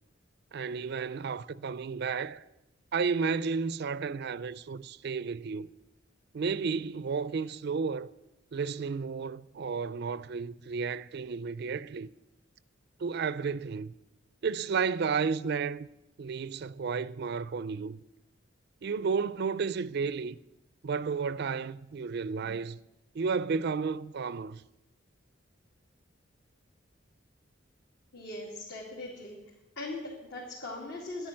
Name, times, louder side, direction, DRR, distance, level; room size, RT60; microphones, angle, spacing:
voice 1, 0.5-2.4 2.9-5.7 6.3-8.1 8.5-12.1 13.0-13.9 14.4-15.9 16.2-18.0 18.8-20.4 20.8-22.8 23.1-24.6, right 5 dB, 55° right, 0.4 m, -32 dB
voice 2, 28.1-29.4 29.8-31.3, left 2 dB, 65° left, 2.8 m, -40 dB
11.5 x 11.0 x 7.6 m
head